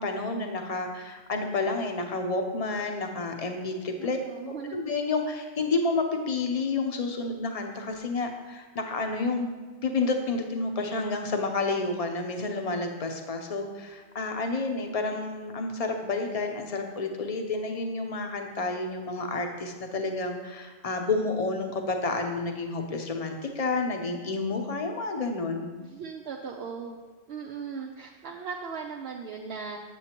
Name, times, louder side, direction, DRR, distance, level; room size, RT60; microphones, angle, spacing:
voice 1, 0.0-4.2 4.4-9.5 9.8-25.7, left 3 dB, 40° left, 4 dB, 0.8 m, -30 dB
voice 2, 4.0-4.8 25.8-27.0 27.3-29.8, right 5 dB, 70° right, 0 dB, 0.8 m, -38 dB
8.2 x 7.8 x 2.9 m, 1.3 s
omnidirectional pair, 1.1 m